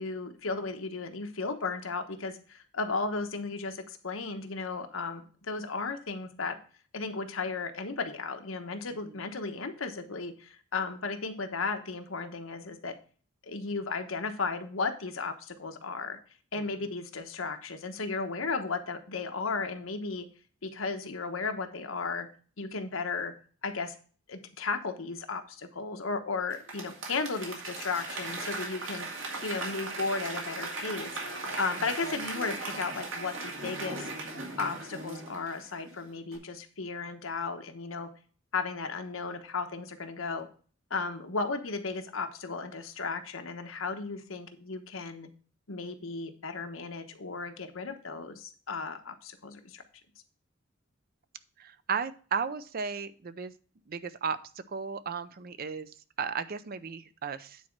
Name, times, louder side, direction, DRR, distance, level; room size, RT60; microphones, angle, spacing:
voice 1, 0.0-6.6 6.9-12.9 13.4-16.2 16.5-20.3 20.6-22.3 22.6-23.3 23.6-23.9 24.3-29.1 29.4-31.2 31.6-34.1 34.6-38.1 38.5-40.5 40.9-45.3 45.7-49.8, left 4 dB, 85° left, 7 dB, 1.1 m, -35 dB
Applause / Crowd, 26.5-35.9 36.3-36.4, right 3 dB, 65° right, 2.3 m, -38 dB
voice 2, 51.6-53.5 53.9-54.4 54.7-57.6, right 6 dB, 50° right, 13 dB, 0.5 m, -35 dB
9.3 x 4.2 x 5.9 m, 0.41 s
head